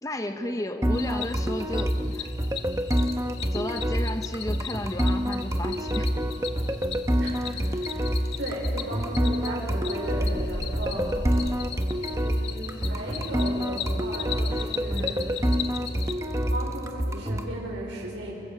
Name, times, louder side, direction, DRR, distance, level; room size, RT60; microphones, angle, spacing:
voice 1, 0.0-2.3 3.5-6.1 10.9-11.2 14.9-15.2, left 1 dB, 15° left, 8 dB, 0.7 m, -33 dB
sound 1, 0.8-17.5, equal, 15° right, 1.0 m, -27 dB
Cricket, 0.9-16.1, left 10 dB, 65° left, 1.0 m, -39 dB
sound 2, 5.6-11.5, equal, 40° right, 1.4 m, -40 dB
voice 2, 7.2-7.5 7.8-11.2 12.1-15.4 16.2-18.3, right 1 dB, 80° right, -3 dB, 5.0 m, -36 dB
24.5 x 22.5 x 7.6 m, 2.9 s
head